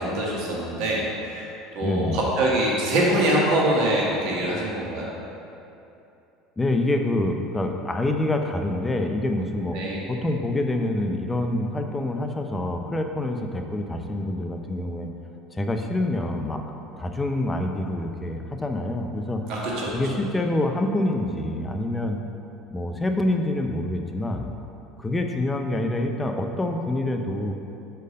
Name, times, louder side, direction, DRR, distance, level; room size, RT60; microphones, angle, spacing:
voice 1, 0.0-5.1 9.7-10.0 19.5-20.0, right 1 dB, 65° right, -4 dB, 1.5 m, -24 dB
voice 2, 1.8-2.3 6.6-9.8 10.1-15.1 15.5-16.6 17.0-19.5 19.9-22.2 22.7-24.5 25.0-27.5, left 1 dB, 15° left, 4 dB, 0.6 m, -26 dB
4.8 x 4.5 x 5.4 m, 2.8 s
hypercardioid pair, 75°, 0 cm